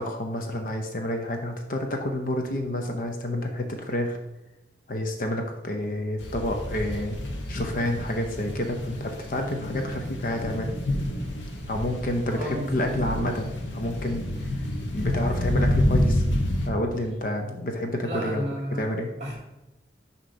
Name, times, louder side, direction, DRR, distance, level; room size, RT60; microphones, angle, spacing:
voice 1, 0.0-4.2 4.9-7.2 7.5-10.7 11.7-14.5 14.9-16.2 16.7-18.4 18.8-19.1, left 1 dB, 45° left, 4 dB, 0.6 m, -29 dB
sound 1, 6.2-16.7, left 1 dB, 80° left, 0.9 m, -28 dB
voice 2, 12.3-12.9 18.0-18.9 19.1-19.4, equal, 35° right, -3 dB, 2.0 m, -33 dB
6.3 x 2.9 x 5.2 m, 0.95 s
head